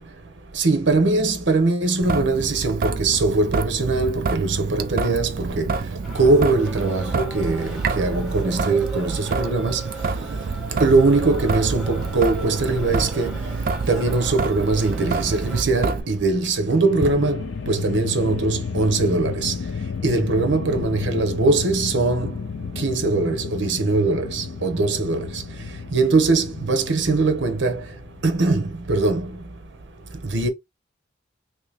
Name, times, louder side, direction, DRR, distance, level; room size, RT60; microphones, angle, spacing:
voice 1, 0.6-5.7 6.1-9.8 10.8-13.4 13.9-19.5 20.0-22.3 22.8-25.3 25.9-27.8 28.2-28.6 28.9-29.3 30.3-30.5, right 3 dB, 70° right, 0.8 m, -21 dB
Traffic noise roadway noise / Drip / Trickle dribble, 2.0-16.0, right 4 dB, 45° right, 0.3 m, -27 dB
sound 1, 6.0-15.6, right 2 dB, 5° right, 1.4 m, -38 dB
sound 2, 16.3-28.6, left 5 dB, 80° left, 0.4 m, -32 dB
3.0 x 2.8 x 3.4 m
head